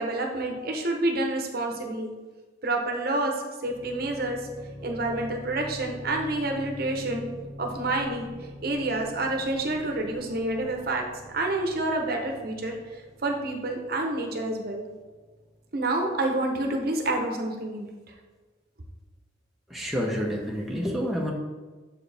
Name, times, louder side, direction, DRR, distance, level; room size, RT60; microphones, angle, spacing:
voice 1, 0.0-2.1 2.6-4.5 4.8-7.3 7.6-8.3 8.6-11.1 11.3-12.8 13.2-14.8 15.7-17.9, right 2 dB, 50° right, 2 dB, 0.8 m, -28 dB
sound 1, 3.6-16.3, left 1 dB, 30° left, 1.5 m, -44 dB
voice 2, 19.7-21.3, equal, ahead, -3 dB, 0.7 m, -28 dB
7.2 x 4.6 x 3.4 m, 1.3 s
head